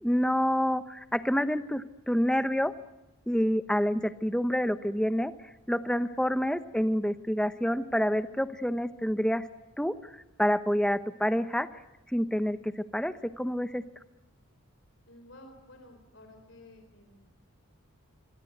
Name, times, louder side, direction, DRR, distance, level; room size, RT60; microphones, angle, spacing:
voice 1, 0.0-2.7 3.3-5.3 5.7-9.4 9.8-9.9 10.4-11.7 12.1-13.8, equal, 5° left, 11 dB, 0.9 m, -27 dB
voice 2, 15.1-17.4, left 1 dB, 60° left, 5 dB, 3.8 m, -53 dB
27.5 x 22.0 x 8.0 m, 0.96 s
head